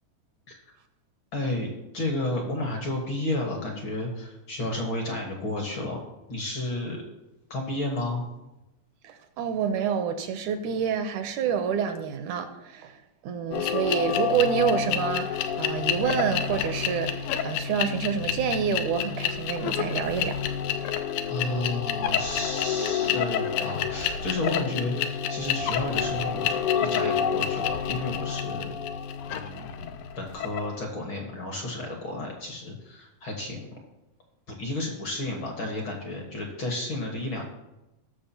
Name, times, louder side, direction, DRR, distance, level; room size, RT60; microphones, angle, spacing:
voice 1, 1.3-1.7 1.9-6.0 6.3-7.0 7.5-8.3 21.3-28.7 29.3-33.7 34.5-37.4, left 2 dB, 50° left, 1 dB, 1.6 m, -32 dB
voice 2, 9.0-20.4, right 7 dB, 75° right, 7 dB, 2.0 m, -28 dB
sound 1, 13.5-30.7, left 8 dB, 80° left, 2.0 m, -28 dB
19.5 x 6.5 x 2.8 m, 0.97 s
omnidirectional pair, 3.8 m